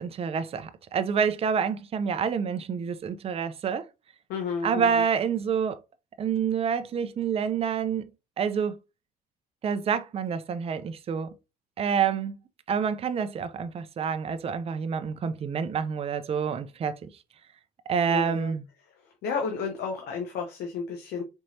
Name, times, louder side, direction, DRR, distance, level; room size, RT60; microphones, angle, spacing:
voice 1, 0.0-3.8 4.6-5.8 6.2-8.1 8.4-8.7 9.6-11.3 11.8-12.3 12.7-17.0 17.9-18.6, right 7 dB, 35° right, 0.5 m, -27 dB
voice 2, 4.3-5.0 18.1-18.5 19.2-21.2, left 5 dB, 75° left, 0.8 m, -32 dB
4.4 x 3.1 x 2.7 m
cardioid pair, 110°, 17 cm